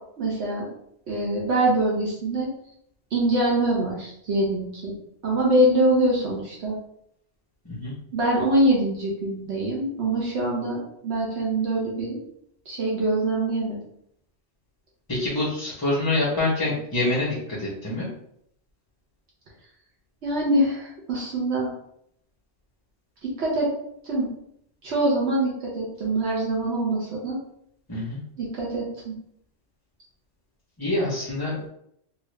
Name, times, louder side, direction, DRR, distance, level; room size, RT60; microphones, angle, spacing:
voice 1, 0.2-0.7 1.1-2.5 3.1-4.9 5.2-6.8 8.1-12.2 12.7-13.8 20.2-21.7 23.2-23.7 24.0-24.3 24.8-27.4 28.4-29.1, right 1 dB, 70° right, -4 dB, 1.1 m, -24 dB
voice 2, 15.1-18.1 27.9-28.2 30.8-31.7, left 2 dB, 25° left, -6 dB, 0.7 m, -26 dB
2.9 x 2.4 x 3.2 m, 0.72 s
omnidirectional pair, 1.2 m